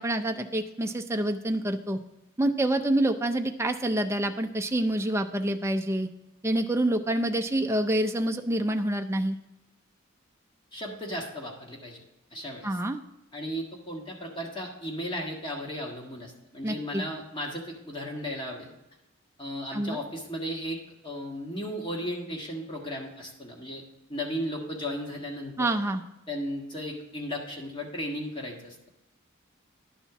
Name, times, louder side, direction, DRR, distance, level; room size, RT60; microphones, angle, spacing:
voice 1, 0.0-2.0 2.4-6.1 6.4-9.4 12.6-13.0 16.6-17.0 19.7-20.0 25.6-26.0, right 1 dB, 10° right, 5 dB, 0.4 m, -27 dB
voice 2, 10.7-12.0 12.3-12.8 13.3-18.7 19.4-20.8 21.0-23.8 24.1-25.7 26.3-28.8, equal, 20° left, 0 dB, 1.5 m, -35 dB
11.0 x 4.3 x 5.8 m, 0.91 s
head